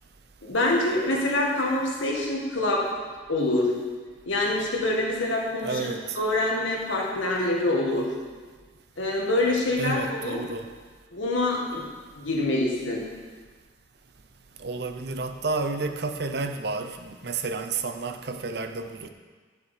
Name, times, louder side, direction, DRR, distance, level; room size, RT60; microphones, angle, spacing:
voice 1, 0.4-2.8 3.3-3.7 4.3-5.9 6.2-8.1 9.0-10.4 11.1-11.8 12.2-13.0, left 2 dB, 90° left, -2 dB, 1.9 m, -25 dB
voice 2, 5.6-6.2 9.8-10.7 14.6-19.1, right 3 dB, 55° right, 7 dB, 0.6 m, -31 dB
10.0 x 6.8 x 5.0 m, 1.5 s
head